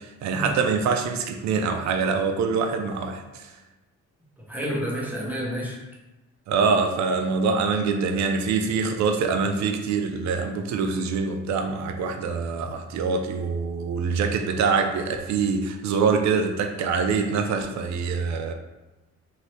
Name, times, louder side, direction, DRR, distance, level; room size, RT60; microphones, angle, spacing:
voice 1, 0.2-3.4 6.5-18.5, right 5 dB, 65° right, 5 dB, 0.5 m, -24 dB
voice 2, 4.5-5.8, equal, 5° right, -4 dB, 0.9 m, -29 dB
2.7 x 2.7 x 3.2 m, 1.0 s
cardioid pair, 90°, 30 cm